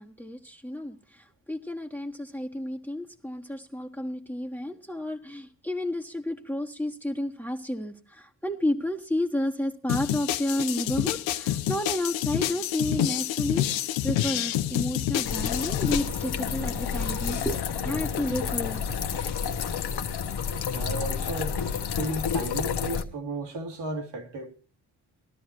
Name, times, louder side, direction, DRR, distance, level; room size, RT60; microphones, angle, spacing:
voice 1, 0.0-18.8, left 1 dB, 5° left, 1.5 m, -31 dB
sound 1, 9.9-16.1, left 12 dB, 75° left, 1.0 m, -28 dB
sound 2, 15.2-23.0, left 7 dB, 55° left, 1.4 m, -30 dB
voice 2, 20.7-21.6 21.9-24.5, right 2 dB, 65° right, 2.8 m, -34 dB
20.0 x 12.5 x 3.0 m
hypercardioid pair, 50°, 45 cm